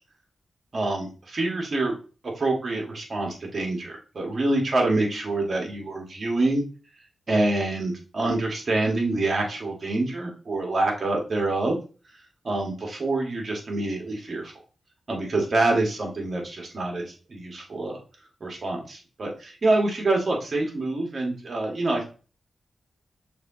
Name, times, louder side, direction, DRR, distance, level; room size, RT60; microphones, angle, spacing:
voice 1, 0.7-1.9 2.4-6.6 7.3-11.8 12.4-14.5 15.1-18.0 18.4-22.0, right 2 dB, 55° right, 0 dB, 1.7 m, -26 dB
6.4 x 3.0 x 2.7 m, 0.35 s
cardioid pair, 50°, 0 cm